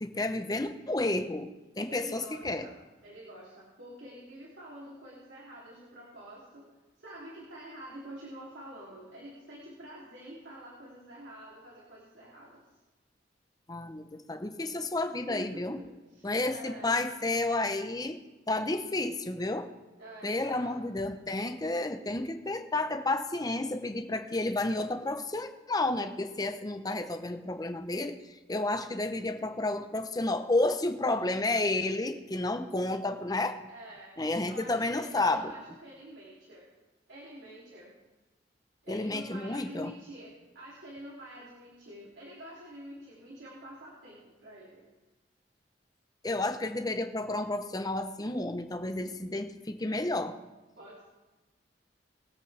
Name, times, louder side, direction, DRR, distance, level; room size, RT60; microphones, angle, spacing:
voice 1, 0.0-1.5 1.8-2.6 13.7-15.8 16.2-18.2 18.5-19.7 20.2-28.1 28.5-33.6 34.2-35.5 38.9-39.9 46.2-50.4, left 2 dB, 20° left, 7 dB, 0.8 m, -31 dB
voice 2, 1.9-2.7 3.0-6.7 7.0-12.8 15.1-16.9 20.0-20.9 33.7-36.7 37.1-37.9 38.8-44.9 50.8-51.1, right 1 dB, 75° right, -5 dB, 2.9 m, -47 dB
22.0 x 8.3 x 3.4 m, 1.1 s
head